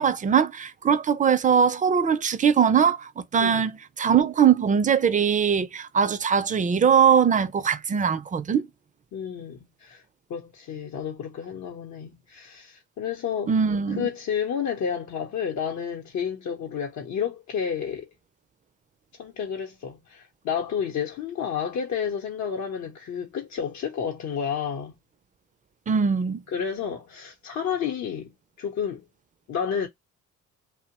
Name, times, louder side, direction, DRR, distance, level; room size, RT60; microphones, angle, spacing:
voice 1, 0.0-8.7 13.5-14.1 25.9-26.4, right 7 dB, 25° right, 0.4 m, -21 dB
voice 2, 9.1-10.0 10.3-13.5 13.9-18.1 19.2-24.9 26.5-29.0 29.5-29.9, left 7 dB, 65° left, 0.7 m, -31 dB
2.8 x 2.1 x 2.8 m
cardioid pair, 90°, 30 cm